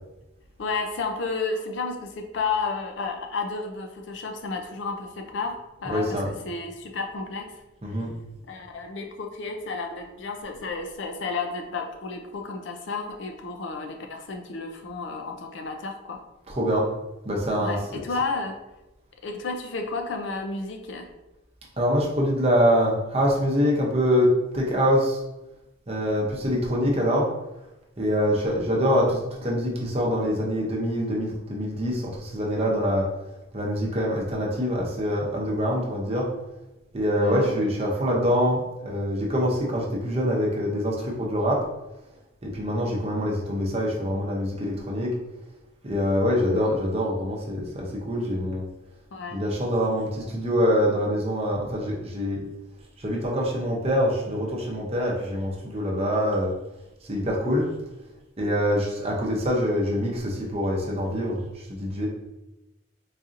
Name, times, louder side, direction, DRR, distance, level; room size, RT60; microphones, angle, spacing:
voice 1, 0.6-7.5 8.5-16.2 17.6-18.6 19.2-21.1 37.2-37.6 49.1-49.4, left 4 dB, 65° left, 4 dB, 0.4 m, -32 dB
voice 2, 5.8-6.3 7.8-8.1 16.5-16.9 17.2-18.0 21.8-25.2 25.9-27.3 28.0-33.1 33.5-36.3 36.9-41.6 42.4-45.1 45.8-48.7 49.3-52.4 53.0-56.5 57.0-57.7 58.4-61.4 61.7-62.1, equal, 30° right, -2 dB, 0.6 m, -25 dB
4.0 x 2.6 x 2.5 m, 0.96 s
head